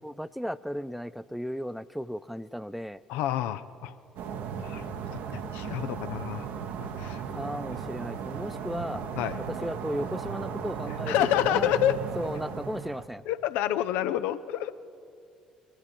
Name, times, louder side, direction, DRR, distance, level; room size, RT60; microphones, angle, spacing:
voice 1, 0.0-3.0 7.3-9.0 9.5-11.7 12.2-13.2, equal, ahead, 15 dB, 0.4 m, -35 dB
voice 2, 3.1-3.9 4.6-5.0 5.3-6.5 6.7-7.2 9.2-9.4 11.1-12.0 13.3-14.7, left 12 dB, 65° left, 12 dB, 0.5 m, -28 dB
sound 1, 4.2-13.1, right 6 dB, 60° right, 0.9 m, -36 dB
21.5 x 11.0 x 4.4 m, 2.4 s
figure-of-eight pair, 50°, 3 cm